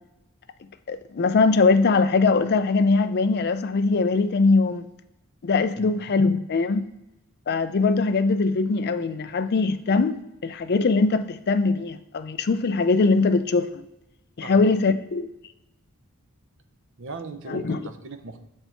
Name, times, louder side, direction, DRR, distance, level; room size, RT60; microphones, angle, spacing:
voice 1, 0.9-4.9 5.4-6.9 7.5-13.8 14.4-15.3 17.5-17.8, left 4 dB, 45° left, 0.4 m, -21 dB
voice 2, 17.0-18.4, right 4 dB, 55° right, 0.7 m, -38 dB
6.8 x 4.4 x 4.4 m
head